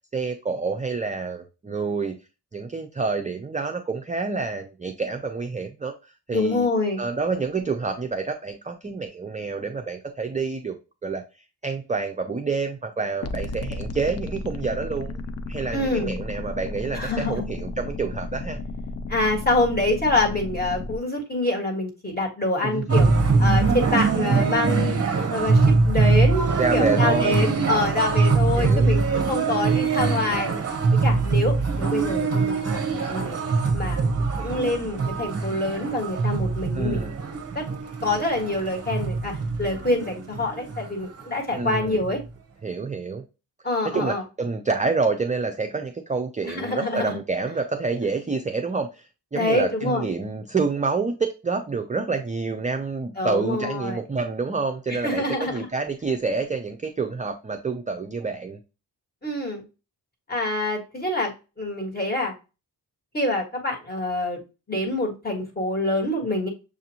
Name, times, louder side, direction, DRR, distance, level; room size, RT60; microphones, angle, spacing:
voice 1, 0.1-2.2 2.5-5.9 6.3-6.7 7.0-10.8 11.0-11.2 11.6-15.2 15.5-18.6 22.6-22.8 26.6-27.9 28.5-28.9 36.7-37.2 41.6-42.0 42.6-43.2 43.9-58.6, right 4 dB, 20° right, 4 dB, 0.4 m, -28 dB
voice 2, 6.3-7.0 15.7-16.2 16.9-17.4 19.1-23.1 23.4-25.0 25.3-33.4 33.7-37.7 38.0-42.2 43.6-44.2 46.4-47.2 49.3-50.0 53.1-54.0 54.9-55.7 59.2-59.6 60.3-62.3 63.1-64.4 64.7-66.5, left 2 dB, 20° left, -1 dB, 1.7 m, -26 dB
sound 1, 13.2-21.0, left 3 dB, 35° left, 0.5 m, -33 dB
sound 2, 22.9-40.9 41.2-41.3 41.5-42.2, right 4 dB, 35° right, 0.7 m, -23 dB
6.7 x 2.5 x 2.8 m, 0.29 s
wide cardioid pair, 125°, 43 cm